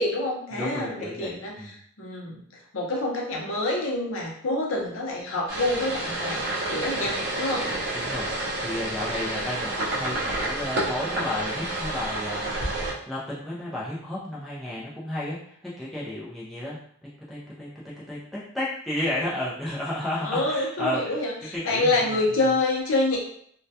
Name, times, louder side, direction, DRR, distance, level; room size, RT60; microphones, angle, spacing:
voice 1, 0.0-2.4 2.7-7.7 20.2-23.2, left 2 dB, 65° left, -1 dB, 0.6 m, -27 dB
voice 2, 0.5-1.7 7.9-8.3 8.6-16.8 17.3-17.7 18.1-21.2 21.5-22.0, left 1 dB, ahead, -8 dB, 0.3 m, -32 dB
sound 1, 5.5-12.9, right 1 dB, 50° right, 0.6 m, -29 dB
2.2 x 2.1 x 2.7 m, 0.65 s
head